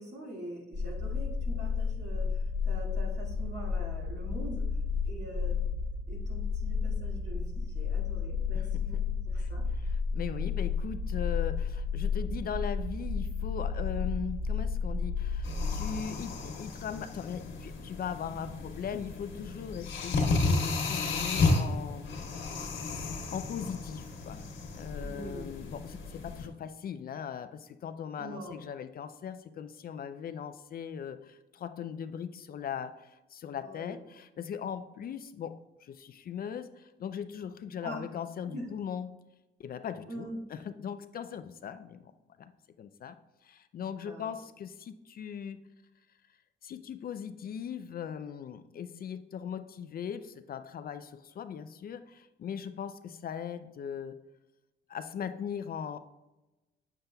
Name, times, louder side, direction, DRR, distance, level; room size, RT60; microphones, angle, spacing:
voice 1, 0.0-4.7 5.0-5.6 6.1-9.6 25.0-25.5 28.2-28.6 33.6-34.1 37.8-38.0 38.5-38.7 40.1-40.4 43.9-44.3, right 1 dB, 60° right, -2 dB, 1.9 m, -44 dB
sound 1, 0.7-16.0, left 5 dB, 30° right, 1.4 m, -32 dB
voice 2, 9.3-22.1 23.3-24.4 24.7-39.2 39.6-42.1 42.4-42.5 42.8-43.2 43.4-45.6 46.6-54.2 54.9-56.0, left 8 dB, 50° left, 10 dB, 0.4 m, -39 dB
sound 2, 15.4-26.5, left 3 dB, 70° left, 1.4 m, -33 dB
7.4 x 6.8 x 2.2 m, 1.0 s
cardioid pair, 90°, 20 cm